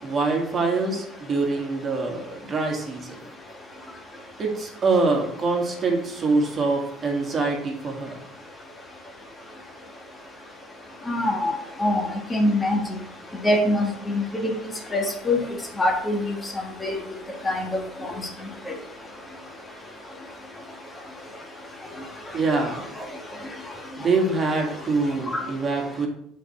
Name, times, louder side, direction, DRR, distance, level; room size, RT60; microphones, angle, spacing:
voice 1, 0.0-3.2 4.4-8.2 22.3-22.9 24.0-26.1, right 3 dB, 35° right, 1 dB, 1.8 m, -24 dB
voice 2, 11.1-11.5 11.8-12.8 13.4-14.5 14.9-15.4 15.8-16.3 16.8-17.0 17.4-17.6 18.0-18.1 25.3-25.4, left 1 dB, 20° left, 2 dB, 1.5 m, -23 dB
7.0 x 4.4 x 4.3 m, 0.72 s
supercardioid pair, 90°, 0 cm